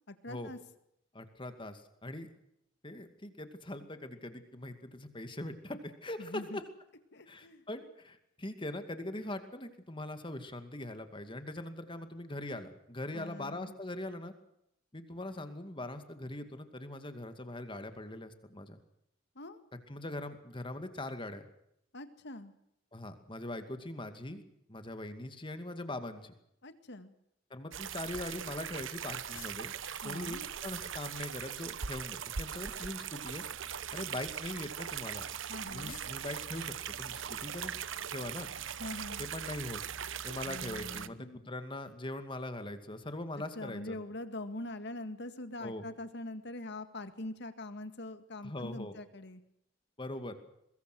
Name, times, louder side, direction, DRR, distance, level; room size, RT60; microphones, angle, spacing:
voice 1, 0.1-0.6 6.2-6.6 7.1-7.6 13.1-13.7 19.4-19.6 21.9-22.5 26.6-27.1 30.0-30.5 35.5-36.0 38.8-39.3 40.4-41.6 43.4-49.4, left 2 dB, 60° left, 10 dB, 2.0 m, -43 dB
voice 2, 1.1-2.3 2.8-6.6 7.3-14.3 14.9-18.8 19.9-21.5 22.9-24.4 24.7-26.3 27.5-29.7 30.0-33.4 33.9-35.3 35.7-37.8 38.1-38.5 39.2-39.8 40.2-44.0 45.6-45.8 48.4-49.0 50.0-50.3, left 1 dB, 25° left, 8 dB, 2.4 m, -41 dB
sound 1, 27.7-41.1, right 8 dB, 70° right, 1.0 m, -40 dB
sound 2, 29.3-30.2 32.6-33.5 35.9-36.2, left 8 dB, 80° left, 3.3 m, -53 dB
23.0 x 21.5 x 6.3 m, 0.77 s
head